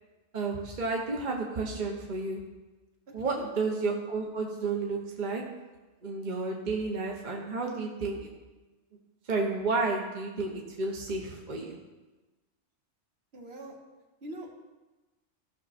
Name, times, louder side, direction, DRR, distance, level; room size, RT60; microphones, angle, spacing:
voice 1, 0.3-2.4 3.1-5.4 6.0-8.3 9.3-11.8, right 3 dB, 40° right, 0 dB, 1.2 m, -31 dB
voice 2, 3.1-3.5 13.3-13.7 14.2-14.5, right 1 dB, 60° right, 1 dB, 1.7 m, -43 dB
15.5 x 6.0 x 4.3 m, 1.2 s
omnidirectional pair, 1.2 m